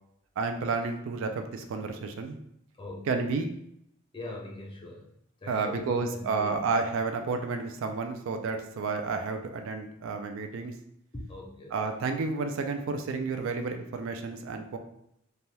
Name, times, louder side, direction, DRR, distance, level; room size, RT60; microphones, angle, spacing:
voice 1, 0.4-2.4 3.1-3.5 5.5-10.7 11.7-14.8, right 4 dB, 60° right, 6 dB, 0.3 m, -31 dB
voice 2, 2.8-3.2 4.1-5.1 5.4-6.6 11.1-11.8, left 2 dB, 20° left, -1 dB, 0.4 m, -41 dB
3.2 x 2.2 x 2.7 m, 0.74 s
head